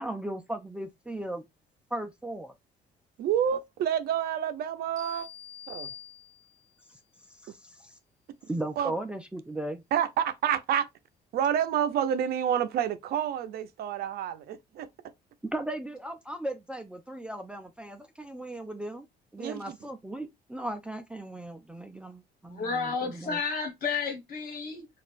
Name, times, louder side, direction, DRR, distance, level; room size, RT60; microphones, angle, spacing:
voice 1, 0.0-1.4 1.9-2.5 7.4-7.9 8.5-9.8 15.5-19.1 19.3-23.4, right 1 dB, 5° right, 0.4 m, -37 dB
voice 2, 3.2-5.3 5.7-5.9 8.8-8.9 9.9-10.9 11.3-14.9 19.4-19.8, right 9 dB, 65° right, 0.5 m, -28 dB
sound 1, 5.0-6.8, left 8 dB, 25° right, 1.5 m, -45 dB
voice 3, 22.5-24.9, left 5 dB, 60° left, 1.4 m, -31 dB
4.0 x 2.4 x 2.5 m
cardioid pair, 110°, 17 cm